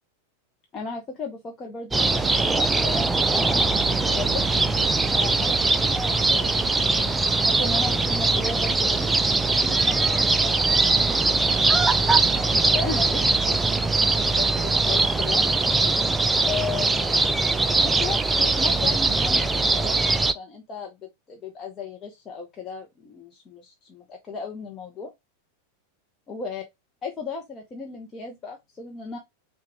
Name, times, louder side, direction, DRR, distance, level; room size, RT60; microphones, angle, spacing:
voice 1, 0.7-4.4 5.1-9.1 9.5-11.8 12.3-15.5 16.4-17.2 17.7-20.1 20.3-25.1 26.3-26.6 27.0-29.2, left 4 dB, 25° left, 0.8 m, -36 dB
sound 1, 1.9-20.3, right 3 dB, 10° right, 0.4 m, -21 dB
5.8 x 2.4 x 2.9 m
figure-of-eight pair, 90°, 0 cm